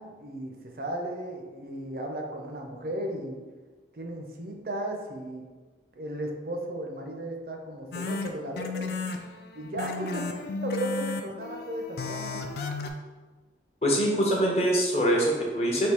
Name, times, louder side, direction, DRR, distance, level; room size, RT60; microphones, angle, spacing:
voice 1, 0.0-3.4 3.9-5.5 5.9-9.0 9.5-12.5, right 1 dB, 55° right, 2 dB, 0.5 m, -35 dB
sound 1, 7.9-12.9, left 4 dB, 60° left, 0.4 m, -34 dB
voice 2, 13.8-15.9, equal, 35° left, -1 dB, 0.7 m, -24 dB
3.5 x 2.7 x 4.3 m, 1.3 s
head